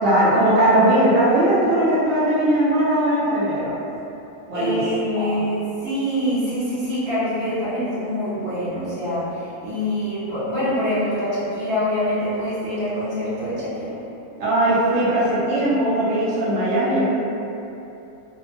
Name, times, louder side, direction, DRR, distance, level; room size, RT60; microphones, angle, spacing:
voice 1, 0.0-3.7 4.5-4.8 5.1-5.4 14.4-17.1, right 1 dB, 75° right, -9 dB, 0.6 m, -19 dB
voice 2, 4.5-13.9, equal, 50° right, -11 dB, 1.0 m, -25 dB
2.7 x 2.1 x 2.6 m, 2.9 s
omnidirectional pair, 1.6 m